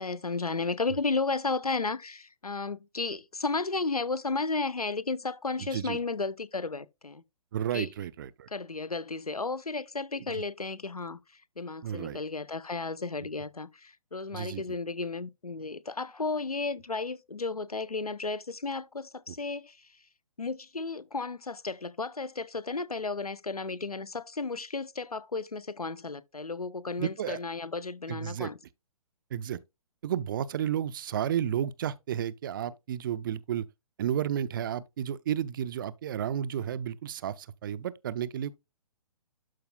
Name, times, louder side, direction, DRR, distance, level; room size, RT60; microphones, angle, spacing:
voice 1, 0.0-7.2 7.7-7.9 8.5-19.9 20.4-28.6, left 3 dB, 90° left, 0.6 m, -33 dB
voice 2, 7.5-8.5 10.3-10.4 11.8-12.2 14.3-14.6 27.0-27.4 28.1-28.5 29.3-29.6 30.0-33.7 34.0-38.6, right 10 dB, 35° right, 0.4 m, -32 dB
12.5 x 4.7 x 2.2 m
figure-of-eight pair, 125°, 19 cm